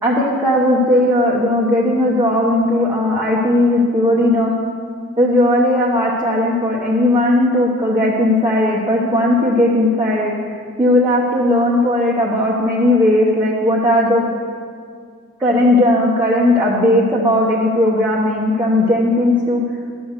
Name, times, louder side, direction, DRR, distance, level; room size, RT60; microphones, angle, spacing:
voice 1, 0.0-4.5 5.2-14.2 15.4-19.6, left 1 dB, 10° right, -6 dB, 0.9 m, -16 dB
11.5 x 6.5 x 6.6 m, 2.2 s
head